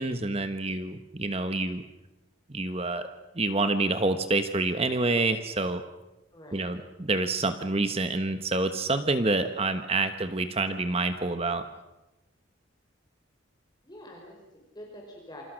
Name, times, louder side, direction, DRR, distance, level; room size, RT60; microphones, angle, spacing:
voice 1, 0.0-1.8 2.5-3.1 3.3-5.8 6.5-11.6, right 2 dB, 30° right, 9 dB, 1.1 m, -27 dB
voice 2, 6.3-6.7 13.8-15.4, left 1 dB, 20° left, 0 dB, 5.0 m, -46 dB
28.0 x 26.5 x 6.5 m, 0.99 s
head